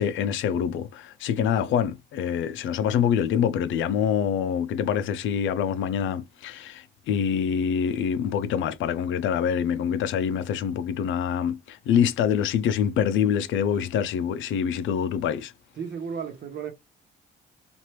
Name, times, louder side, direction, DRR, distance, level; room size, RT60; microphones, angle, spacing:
voice 1, 0.0-15.5, left 8 dB, 75° left, 0.5 m, -25 dB
voice 2, 1.4-1.8 15.8-16.7, right 6 dB, 60° right, 1.1 m, -35 dB
2.9 x 2.5 x 3.1 m
cardioid pair, 90°, 20 cm